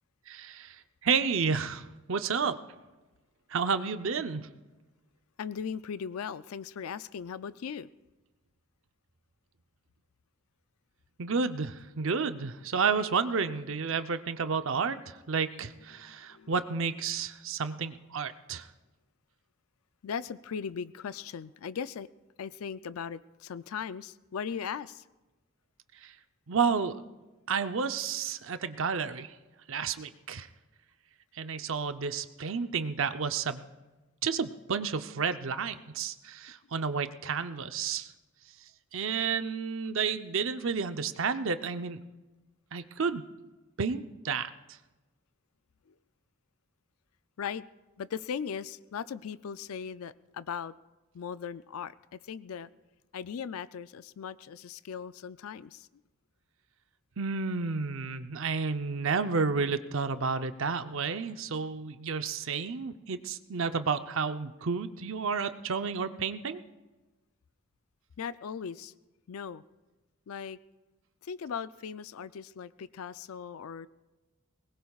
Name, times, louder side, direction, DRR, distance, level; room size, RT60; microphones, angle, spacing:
voice 1, 0.3-0.8 1.0-2.6 3.5-4.5 11.2-18.7 26.0-26.1 26.5-27.0 27.5-29.3 29.7-30.5 31.3-33.6 34.2-38.1 38.9-42.0 42.7-43.3 43.8-44.5 57.2-66.6, right 5 dB, 65° right, 10 dB, 0.7 m, -31 dB
voice 2, 5.4-7.9 15.9-16.5 20.0-22.1 22.4-25.0 45.9-46.0 47.4-47.7 48.0-50.7 51.1-52.7 53.1-55.9 68.2-68.9 69.3-69.6 70.3-70.6 71.2-73.9, left 7 dB, 80° left, 15 dB, 0.4 m, -38 dB
22.5 x 20.0 x 2.4 m, 1.1 s
head